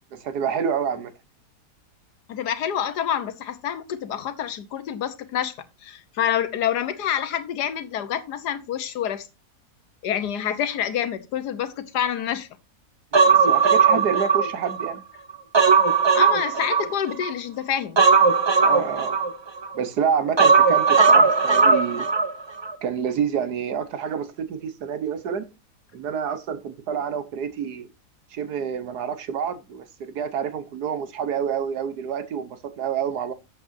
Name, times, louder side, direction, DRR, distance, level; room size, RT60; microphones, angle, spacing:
voice 1, 0.1-1.1 13.1-15.0 18.6-19.2 19.7-22.1 22.8-25.5 25.9-27.9 28.3-33.3, right 7 dB, 80° right, 1.6 m, -28 dB
voice 2, 2.3-5.5 5.8-9.3 10.0-12.5 16.1-18.0, left 9 dB, 90° left, 1.5 m, -27 dB
Human voice, 13.1-14.9 15.3-17.3 18.0-19.7 20.4-22.3 22.6-22.7, right 5 dB, 35° right, 0.4 m, -18 dB
12.0 x 7.7 x 2.7 m
omnidirectional pair, 1.7 m